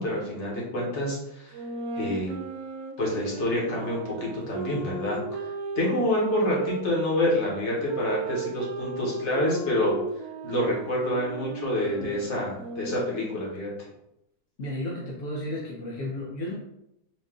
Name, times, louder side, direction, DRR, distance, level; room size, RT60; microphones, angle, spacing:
voice 1, 0.0-1.6 1.9-2.4 3.0-9.9 10.4-13.7, left 1 dB, 40° left, -4 dB, 1.3 m, -27 dB
sound 1, 1.5-7.1 7.8-13.4, right 4 dB, 85° right, 0.8 m, -36 dB
voice 2, 14.6-16.5, left 1 dB, 60° left, -4 dB, 0.8 m, -33 dB
4.5 x 2.5 x 3.7 m, 0.85 s
omnidirectional pair, 2.2 m